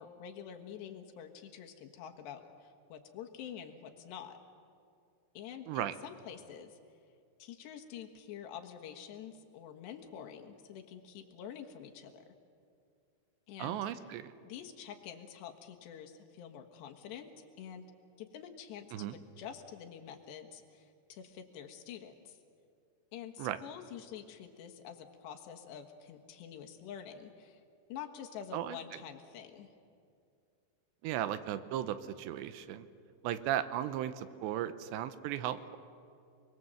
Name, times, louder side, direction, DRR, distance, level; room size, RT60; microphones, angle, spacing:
voice 1, 0.0-4.4 5.4-6.8 7.4-12.3 13.5-13.8 14.4-17.9 18.2-22.4 23.1-27.6 27.9-29.7, left 8 dB, 75° left, 4 dB, 3.6 m, -47 dB
voice 2, 13.6-14.3 18.9-19.2 23.4-23.6 28.5-28.8 31.0-32.9 33.2-35.6, right 11 dB, 80° right, 12 dB, 3.0 m, -36 dB
30.0 x 21.0 x 7.9 m, 2.5 s
omnidirectional pair, 5.2 m